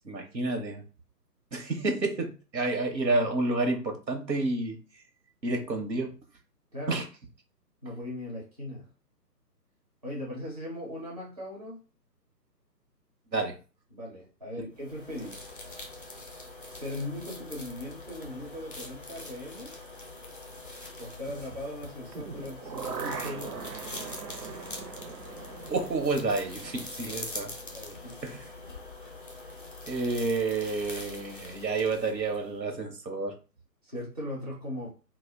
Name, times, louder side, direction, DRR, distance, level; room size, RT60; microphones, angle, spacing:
voice 1, 0.0-0.8 1.5-4.8 5.4-6.1 6.9-7.0 13.3-13.6 25.7-27.5 28.2-28.4 29.9-33.3, right 3 dB, 90° right, 5 dB, 0.9 m, -29 dB
voice 2, 6.7-7.0 7.8-8.9 10.0-11.8 13.9-15.4 16.7-19.9 21.0-23.7 24.3-24.8 27.7-28.4 33.8-34.9, left 1 dB, 25° right, -4 dB, 0.4 m, -39 dB
sound 1, 14.8-32.6, left 2 dB, 35° left, 0.4 m, -43 dB
sound 2, 22.1-28.1 28.4-28.5, right 5 dB, 70° right, 0.6 m, -41 dB
2.2 x 2.1 x 3.3 m, 0.34 s
figure-of-eight pair, 140°, 50 cm